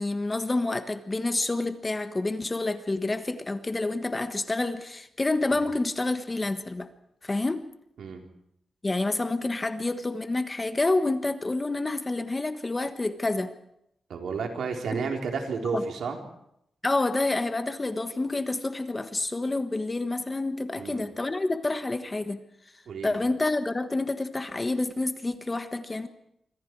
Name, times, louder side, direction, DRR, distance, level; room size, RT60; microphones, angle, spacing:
voice 1, 0.0-6.9 7.2-7.6 8.8-13.5 14.9-15.0 15.6-15.8 16.8-22.4 23.0-26.1, left 2 dB, 20° left, 9 dB, 1.4 m, -28 dB
voice 2, 14.1-16.2 20.7-21.1 22.9-23.2, right 5 dB, 80° right, 3 dB, 4.0 m, -31 dB
27.0 x 25.0 x 4.8 m, 0.75 s
wide cardioid pair, 145°, 0 cm